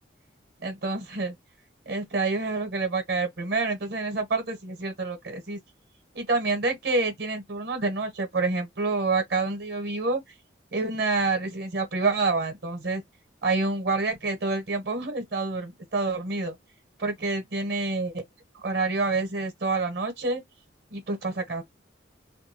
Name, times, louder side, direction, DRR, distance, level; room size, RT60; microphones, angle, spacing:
voice 1, 0.6-1.3 1.9-5.6 6.1-10.2 10.7-13.0 13.4-16.5 17.0-18.1 18.5-20.4 20.9-21.6, right 3 dB, 60° right, 0.9 m, -27 dB
2.5 x 2.2 x 2.8 m
head